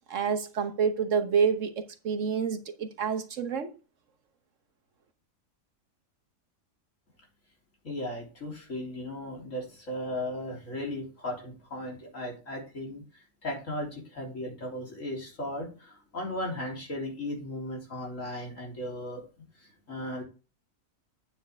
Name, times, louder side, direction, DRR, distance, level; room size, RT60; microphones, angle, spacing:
voice 1, 0.1-1.7 2.0-3.7, right 6 dB, 65° right, 1.3 m, -28 dB
voice 2, 7.8-13.0 13.4-19.2 19.9-20.2, left 1 dB, 65° left, 3.7 m, -36 dB
9.1 x 7.0 x 3.4 m
omnidirectional pair, 1.4 m